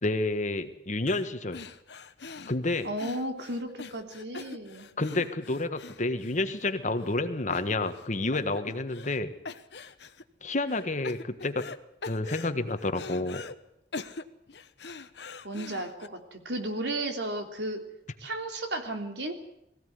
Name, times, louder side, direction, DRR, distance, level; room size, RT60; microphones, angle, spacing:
voice 1, 0.0-1.6 2.5-2.9 5.0-9.3 10.4-11.6 12.1-13.4, left 2 dB, 45° left, 9 dB, 1.6 m, -29 dB
sound 1, 1.1-1.3 1.5-6.7 7.0-7.2 7.5-8.1 8.3-9.2 9.5-10.2 10.7-11.8 12.0-13.5 13.9-16.1, left 4 dB, 70° left, 1.1 m, -43 dB
voice 2, 2.8-4.9 15.4-17.8 18.2-19.3, right 1 dB, 70° right, 5 dB, 3.2 m, -34 dB
22.0 x 16.0 x 9.5 m, 0.81 s
head